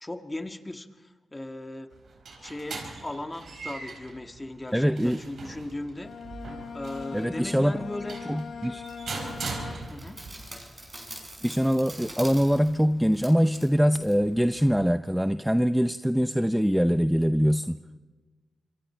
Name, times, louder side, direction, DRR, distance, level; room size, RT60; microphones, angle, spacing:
voice 1, 0.0-1.9 2.4-6.1 6.7-8.2 9.9-10.2, left 1 dB, 20° left, 6 dB, 1.7 m, -37 dB
sound 1, 1.9-10.3, right 4 dB, 70° right, 4.8 m, -40 dB
voice 2, 4.7-5.2 7.1-7.7 8.3-8.8 11.4-17.8, equal, ahead, 10 dB, 0.6 m, -23 dB
Bowed string instrument, 5.9-10.2, left 6 dB, 75° left, 1.8 m, -41 dB
sound 2, 8.8-14.8, right 1 dB, 20° right, 6.0 m, -45 dB
26.5 x 23.5 x 4.5 m, 1.4 s
cardioid pair, 60°, 0 cm